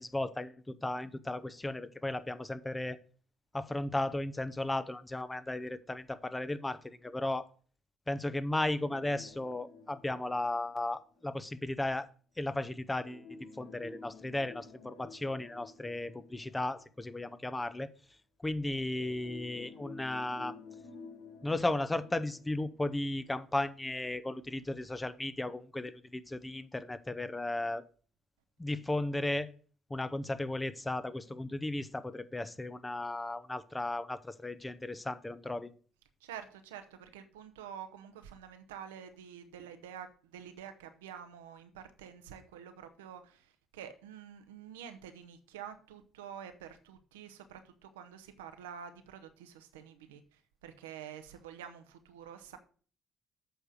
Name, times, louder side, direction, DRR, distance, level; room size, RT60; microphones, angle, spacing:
voice 1, 0.0-3.0 3.5-7.5 8.1-12.1 12.4-13.2 13.6-17.9 18.4-20.5 21.4-27.8 28.6-29.5 29.9-35.7, left 2 dB, 15° left, 14 dB, 0.8 m, -35 dB
sound 1, 8.8-11.5 13.0-17.3 18.6-23.5 23.8-23.9 24.5-24.6, left 4 dB, 80° left, 1.5 m, -52 dB
voice 2, 36.2-52.6, right 8 dB, 85° right, 9 dB, 0.8 m, -48 dB
8.1 x 4.8 x 6.4 m, 0.42 s
hypercardioid pair, 50°, 0 cm